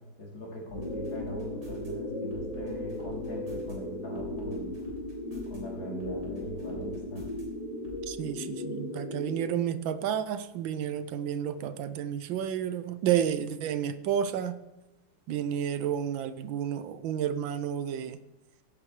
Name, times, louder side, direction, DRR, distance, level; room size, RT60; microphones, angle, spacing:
voice 1, 0.2-4.7 5.5-7.3, equal, 75° left, -3 dB, 3.9 m, -41 dB
sound 1, 0.7-9.4, left 1 dB, 15° left, 5.1 m, -36 dB
sound 2, 0.7-1.9 2.3-3.7 4.2-5.6 6.0-7.4 7.8-8.0, left 1 dB, 55° right, 4.2 m, -47 dB
voice 2, 8.1-14.5 15.3-18.2, right 9 dB, 75° right, 13 dB, 1.3 m, -31 dB
16.0 x 9.8 x 3.2 m, 1.0 s
omnidirectional pair, 2.2 m